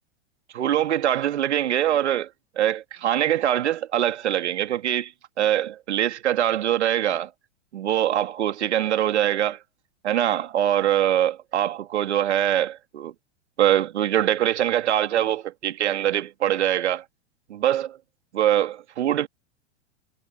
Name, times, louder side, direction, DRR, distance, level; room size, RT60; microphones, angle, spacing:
voice 1, 0.5-2.3 2.6-5.1 5.4-7.3 7.7-9.6 10.0-13.1 13.6-17.0 17.5-18.0 18.3-19.3, right 11 dB, 70° right, 2.7 m, -23 dB
figure-of-eight pair, 100°, 36 cm